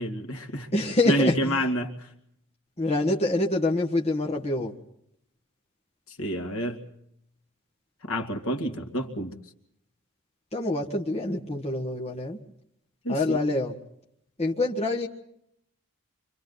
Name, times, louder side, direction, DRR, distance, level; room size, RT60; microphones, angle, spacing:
voice 1, 0.0-0.7 1.1-2.1 6.1-6.8 8.0-9.4 13.0-13.4, equal, 65° left, 4 dB, 2.3 m, -28 dB
voice 2, 0.7-1.6 2.8-4.7 10.5-12.4 13.1-13.7 14.4-15.1, left 2 dB, 30° left, -1 dB, 1.6 m, -26 dB
29.5 x 25.5 x 4.0 m, 0.74 s
head